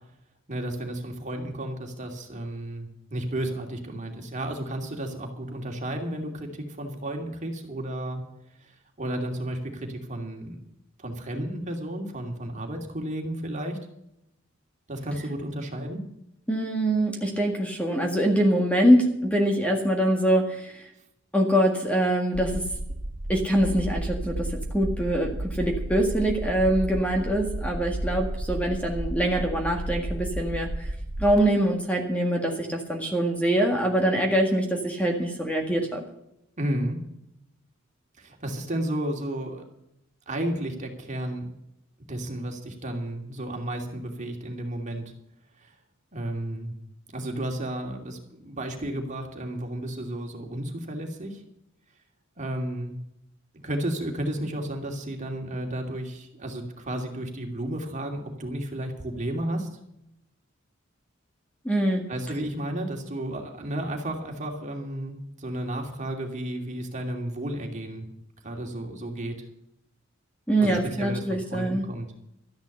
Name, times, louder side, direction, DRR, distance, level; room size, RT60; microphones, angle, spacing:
voice 1, 0.5-8.2 9.0-10.6 11.0-13.8 14.9-16.0 36.6-37.0 38.2-39.6 40.3-41.5 42.1-45.0 45.6-45.7 46.1-46.7 47.1-51.4 52.4-53.0 53.5-59.7 62.1-68.1 68.4-69.4 70.6-72.1, right 1 dB, 40° right, 2 dB, 2.7 m, -32 dB
voice 2, 16.5-20.9 21.3-22.6 23.3-30.9 31.2-36.0 61.7-62.0 70.5-71.9, right 1 dB, 5° left, 2 dB, 1.8 m, -24 dB
sound 1, 22.3-31.4, right 1 dB, 90° right, 1.2 m, -32 dB
13.0 x 10.5 x 6.7 m, 0.81 s
head